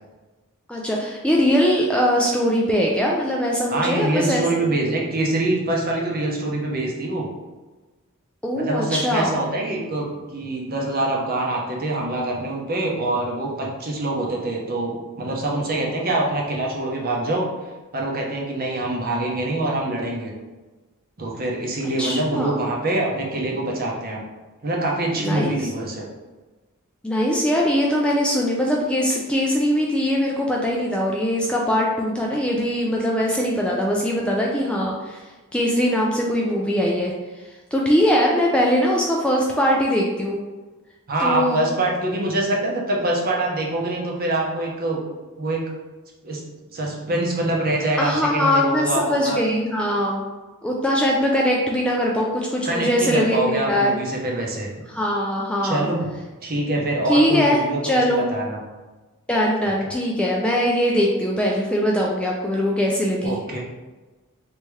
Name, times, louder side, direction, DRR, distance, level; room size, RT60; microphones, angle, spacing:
voice 1, 0.7-4.6 8.4-9.3 22.0-22.6 25.2-25.6 27.0-37.1 37.7-40.4 41.2-41.6 48.0-50.2 50.6-54.0 54.9-55.9 57.1-58.2 59.3-63.4, equal, 5° left, -2 dB, 0.3 m, -21 dB
voice 2, 3.7-7.3 8.6-17.5 17.9-20.3 21.2-24.2 24.6-26.0 41.1-45.0 45.4-45.6 46.2-46.4 46.7-49.4 52.7-54.7 55.6-56.1 56.4-58.6 63.2-63.6, right 2 dB, 45° right, -2 dB, 0.8 m, -24 dB
3.4 x 2.8 x 3.1 m, 1.2 s
head